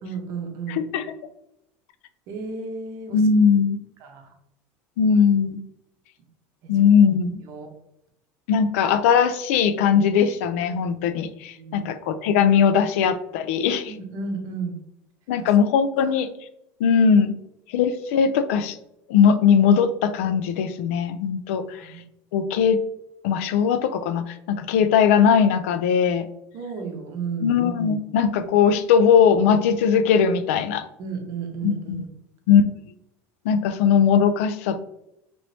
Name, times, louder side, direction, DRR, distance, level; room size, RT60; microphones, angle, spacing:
voice 1, 0.0-0.8 2.3-3.2 4.0-4.3 6.6-6.7 7.4-7.7 11.5-12.0 13.9-14.8 15.4-15.5 16.0-16.1 21.7-22.0 26.5-27.6 31.0-32.1, right 5 dB, 45° right, 3 dB, 0.6 m, -33 dB
voice 2, 0.7-1.1 3.1-3.8 5.0-5.6 6.7-7.4 8.5-13.9 15.3-16.3 16.8-17.3 17.7-18.8 19.1-21.9 22.3-22.8 23.2-26.3 27.4-30.8 31.6-32.0 32.5-32.7 33.5-34.8, left 7 dB, 90° left, 12 dB, 0.3 m, -19 dB
3.0 x 2.6 x 3.2 m, 0.81 s
cardioid pair, 165°, 7 cm